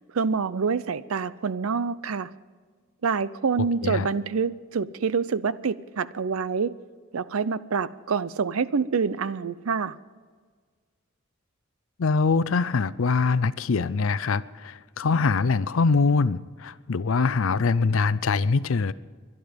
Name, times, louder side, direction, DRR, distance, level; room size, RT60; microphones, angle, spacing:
voice 1, 0.1-2.3 3.0-6.7 7.1-10.0, right 5 dB, 90° right, 17 dB, 0.6 m, -26 dB
voice 2, 12.0-18.9, left 4 dB, 75° left, 18 dB, 0.5 m, -23 dB
22.0 x 11.0 x 5.2 m, 1.6 s
head